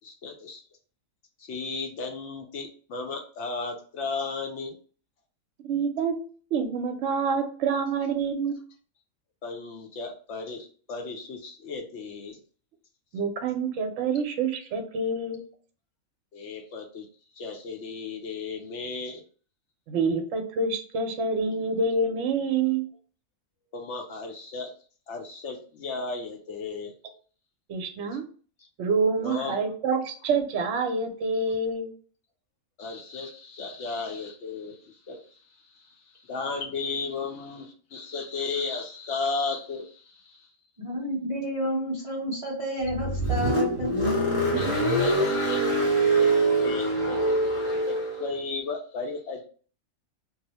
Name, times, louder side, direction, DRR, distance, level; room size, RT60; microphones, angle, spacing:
voice 1, 0.0-0.6 1.5-4.8 9.4-12.4 16.3-17.1 17.4-19.2 23.7-24.7 25.1-26.9 29.2-29.6 32.8-35.2 35.7-35.8 36.2-40.5 44.5-45.8 46.2-46.3 46.6-47.4 47.6-49.4, left 4 dB, 65° left, 3 dB, 0.8 m, -35 dB
voice 2, 5.6-8.5 13.1-15.4 19.9-22.8 27.7-28.2 28.8-31.9, right 4 dB, 65° right, 4 dB, 0.8 m, -27 dB
voice 3, 40.8-43.9, right 1 dB, 40° right, -4 dB, 0.5 m, -30 dB
Car, 42.8-48.3, right 1 dB, 30° left, 0.7 m, -24 dB
2.7 x 2.0 x 4.0 m, 0.42 s
omnidirectional pair, 1.4 m